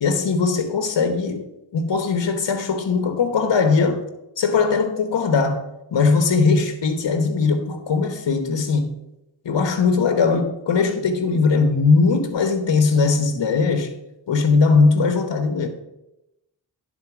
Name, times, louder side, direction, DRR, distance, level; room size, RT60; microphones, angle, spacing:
voice 1, 0.0-1.5 1.7-4.1 4.4-5.6 5.9-8.9 9.4-13.9 14.3-15.7, left 4 dB, 70° left, 1.1 m, -19 dB
10.5 x 4.2 x 6.0 m
cardioid pair, 40°, 45 cm